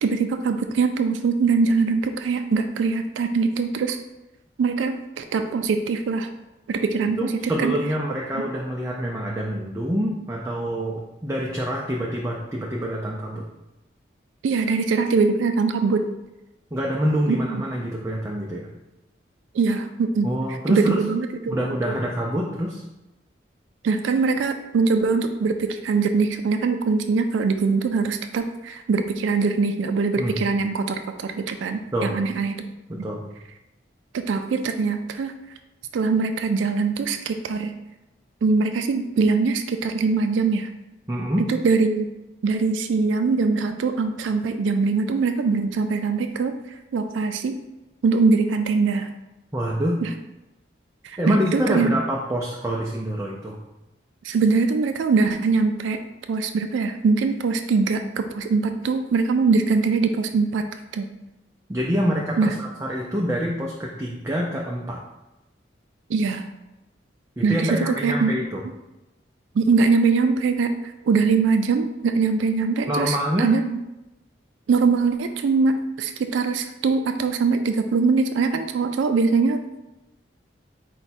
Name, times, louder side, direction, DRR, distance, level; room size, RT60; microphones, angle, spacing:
voice 1, 0.0-4.0 4.6-6.3 6.7-7.7 8.3-8.5 14.4-16.1 17.3-17.6 19.5-20.3 20.7-21.6 21.9-22.0 23.8-32.7 34.1-35.3 35.9-37.7 38.4-40.7 41.5-42.1 42.4-46.5 46.9-47.6 48.0-49.1 50.0-50.1 51.0-51.9 54.2-56.0 56.3-60.6 60.9-61.1 62.4-62.5 66.1-66.4 67.4-68.3 69.6-70.8 71.1-73.8 74.7-79.8, right 4 dB, 85° right, 7 dB, 0.3 m, -22 dB
voice 2, 7.2-13.4 16.7-18.7 20.2-21.0 21.5-22.8 30.2-30.4 31.9-32.2 32.9-33.2 41.1-41.4 49.5-50.0 51.2-53.6 61.7-65.0 67.4-68.6 72.9-73.5, equal, 15° right, -3 dB, 0.4 m, -26 dB
4.8 x 2.2 x 4.1 m, 0.97 s
head